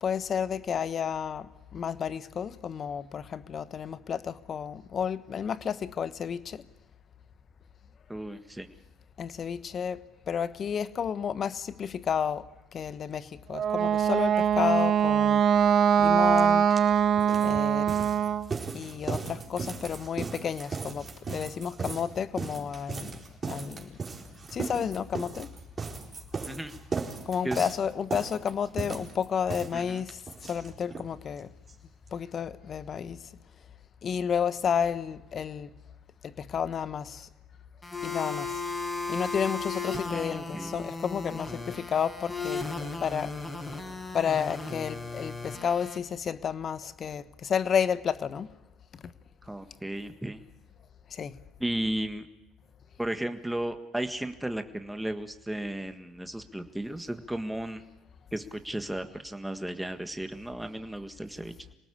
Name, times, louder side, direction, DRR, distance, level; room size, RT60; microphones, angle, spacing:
voice 1, 0.0-6.6 9.2-10.0 10.3-12.4 12.7-15.4 16.0-16.7 17.4-17.9 18.7-23.2 23.5-24.0 24.5-25.5 27.3-31.5 32.1-33.2 34.0-35.7 36.2-37.3 38.0-38.6 39.1-42.6 43.0-43.3 44.1-48.5 48.9-49.1 51.1-51.4, left 7 dB, 45° left, 1.1 m, -31 dB
voice 2, 8.1-8.7 26.4-26.7 27.4-27.7 29.7-30.0 40.1-40.7 49.4-50.4 51.6-52.3 53.0-57.8 58.3-61.5, right 1 dB, 5° right, 1.7 m, -34 dB
Wind instrument woodwind instrument, 13.5-18.5, right 8 dB, 50° right, 0.8 m, -23 dB
sound 1, 16.4-16.5 16.7-31.1 31.4-31.5 31.7-31.8 32.1-32.2, right 5 dB, 35° right, 4.4 m, -37 dB
sound 2, 37.8-46.0, left 3 dB, 20° left, 5.0 m, -35 dB
26.5 x 18.5 x 8.5 m
hypercardioid pair, 65°, 0 cm